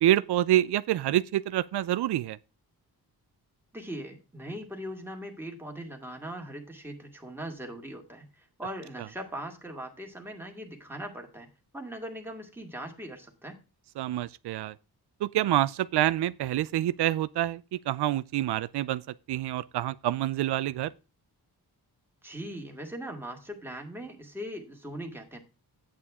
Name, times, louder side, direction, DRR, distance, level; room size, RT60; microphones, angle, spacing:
voice 1, 0.0-2.4 14.0-14.8 15.2-19.0 19.3-20.9, right 13 dB, 90° right, 0.5 m, -27 dB
voice 2, 3.7-11.5 11.7-13.6 22.2-25.4, equal, 5° right, 2.0 m, -40 dB
11.0 x 8.8 x 3.6 m
wide cardioid pair, 145°, 39 cm